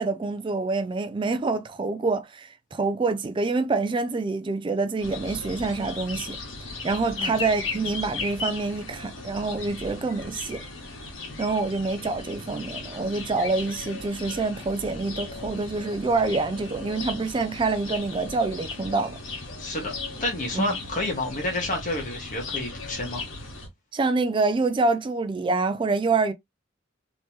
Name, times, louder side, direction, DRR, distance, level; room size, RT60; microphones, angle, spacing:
voice 1, 0.0-6.4 6.8-10.6 11.4-19.2 20.5-20.7 23.9-26.3, right 3 dB, 25° right, 0.3 m, -26 dB
sound 1, 5.0-23.7, left 3 dB, 80° left, 1.5 m, -37 dB
voice 2, 19.6-19.9 20.2-23.2, left 1 dB, 40° left, 1.4 m, -29 dB
3.2 x 2.9 x 3.1 m
head